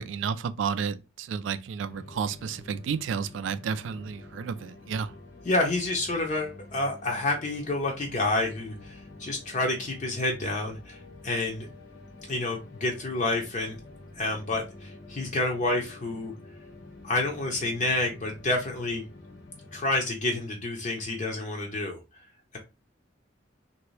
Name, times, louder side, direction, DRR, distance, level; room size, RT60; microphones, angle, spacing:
voice 1, 0.0-5.1, right 6 dB, 80° right, 0.3 m, -31 dB
sound 1, 1.9-20.0, left 2 dB, 55° left, 0.9 m, -48 dB
voice 2, 5.4-11.7 12.3-13.8 14.1-16.3 17.0-19.0 19.7-22.0 22.5-22.6, left 2 dB, 40° left, 0.6 m, -29 dB
2.9 x 2.6 x 3.1 m
head